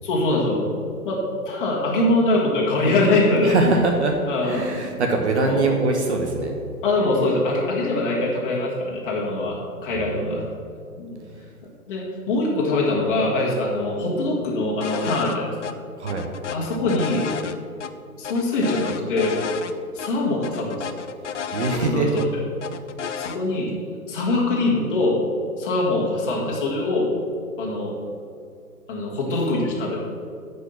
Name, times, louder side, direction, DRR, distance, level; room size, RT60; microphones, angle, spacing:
voice 1, 0.0-0.6 1.0-3.6 4.3-4.7 5.4-5.6 6.8-10.4 11.0-11.2 11.9-15.7 16.5-17.2 18.2-19.4 19.9-20.9 21.7-22.4 23.2-23.7 24.1-25.2 25.6-27.1 27.6-28.0 28.9-30.0, left 2 dB, 35° left, -4 dB, 2.0 m, -23 dB
voice 2, 3.4-4.1 4.4-6.5 9.9-10.1 16.0-16.3 21.5-22.1, right 3 dB, 45° right, 3 dB, 1.2 m, -22 dB
sound 1, 14.8-15.4 15.6-15.7 16.1-17.9 18.2-19.7 20.0-20.1 20.4-22.3 22.6-23.4, left 7 dB, 50° left, 0.6 m, -32 dB
9.8 x 5.4 x 7.1 m, 2.4 s
figure-of-eight pair, 130°, 46 cm